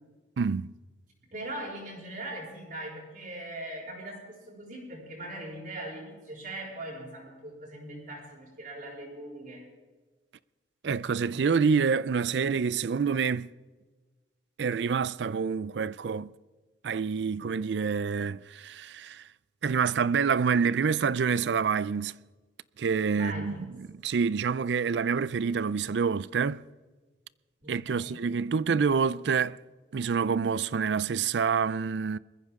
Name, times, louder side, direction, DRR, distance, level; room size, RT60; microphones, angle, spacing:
voice 1, 0.4-0.7 10.8-13.5 14.6-16.3 16.8-19.2 19.6-22.2 22.8-26.6 27.7-29.6 29.9-32.2, right 6 dB, 70° right, 0.4 m, -27 dB
voice 2, 1.3-9.6 23.1-23.7 27.6-28.2, right 1 dB, 45° right, 5.6 m, -40 dB
21.5 x 15.0 x 3.6 m
head